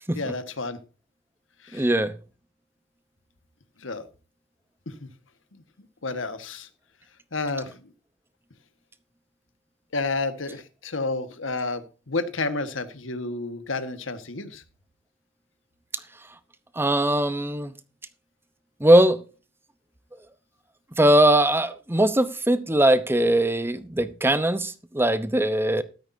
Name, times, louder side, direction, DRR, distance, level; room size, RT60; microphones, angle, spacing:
voice 1, 0.1-0.8 1.6-1.9 3.8-4.1 4.9-5.1 6.0-6.7 7.3-7.8 9.9-14.6, left 3 dB, 90° left, 1.6 m, -30 dB
voice 2, 1.7-2.2 16.8-17.7 18.8-19.2 20.9-25.8, right 1 dB, 10° right, 0.8 m, -20 dB
13.5 x 13.0 x 2.7 m
head